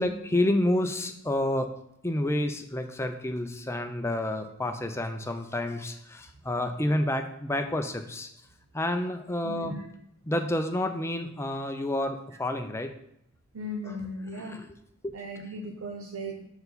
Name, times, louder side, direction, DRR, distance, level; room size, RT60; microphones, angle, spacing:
voice 1, 0.0-1.7 2.0-8.3 8.7-9.7 10.3-12.9 13.8-14.0 14.4-14.7 15.0-15.1, left 1 dB, 15° left, 6 dB, 0.5 m, -29 dB
voice 2, 9.4-9.9 13.5-14.6 15.1-16.5, equal, 90° right, 1 dB, 0.8 m, -37 dB
6.7 x 4.7 x 4.0 m, 0.74 s
head